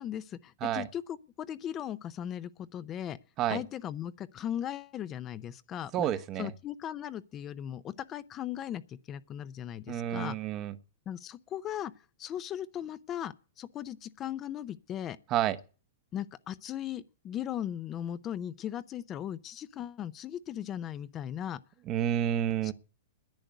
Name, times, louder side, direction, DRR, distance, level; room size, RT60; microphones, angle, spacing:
voice 1, 0.0-3.2 3.5-6.1 6.4-10.4 11.1-11.9 12.2-15.2 16.1-21.6 22.6-22.7, left 10 dB, 25° left, 0.5 m, -38 dB
voice 2, 5.9-6.5 9.9-10.7 15.3-15.6 21.9-22.7, right 11 dB, 30° right, 0.9 m, -29 dB
10.5 x 7.7 x 9.2 m
hypercardioid pair, 145°, 0 cm